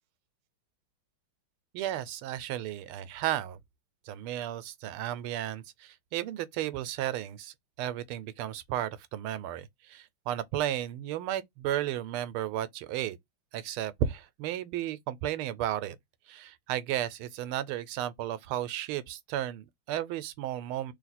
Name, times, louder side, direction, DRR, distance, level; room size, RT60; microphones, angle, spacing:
voice 1, 1.7-3.6 4.1-13.2 13.5-16.0 16.3-20.9, right 12 dB, 85° right, 1.5 m, -34 dB
3.5 x 2.8 x 4.1 m
omnidirectional pair, 2.3 m